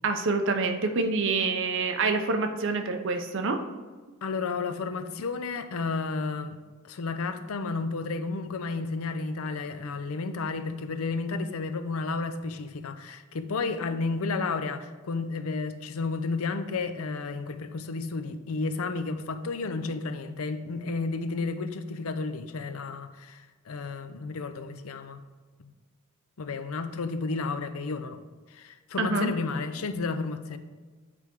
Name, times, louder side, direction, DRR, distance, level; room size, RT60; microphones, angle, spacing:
voice 1, 0.0-3.6 29.0-29.3, right 3 dB, 60° right, 5 dB, 0.7 m, -26 dB
voice 2, 4.2-6.6 6.8-25.2 25.6-25.7 26.4-28.2 28.5-30.6, left 4 dB, 80° left, 9 dB, 0.5 m, -32 dB
8.5 x 3.5 x 4.5 m, 1.4 s
head